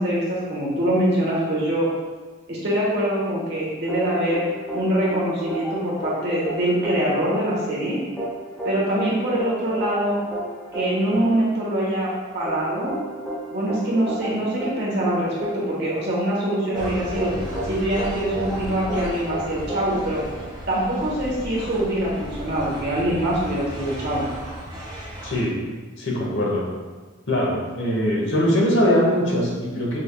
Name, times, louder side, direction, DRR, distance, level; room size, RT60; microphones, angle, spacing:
voice 1, 0.0-1.9 2.5-8.0 8.6-10.2 10.7-12.9 13.5-17.3 17.6-20.2 20.7-24.3, right 1 dB, 55° right, -6 dB, 1.3 m, -24 dB
sound 1, 3.9-20.8, right 1 dB, 5° left, 0.8 m, -33 dB
sound 2, 16.7-25.4, right 1 dB, 20° right, 1.3 m, -35 dB
voice 2, 25.2-25.6 26.0-26.6 27.3-30.0, equal, 60° left, -3 dB, 1.0 m, -21 dB
5.4 x 3.3 x 2.3 m, 1.4 s
head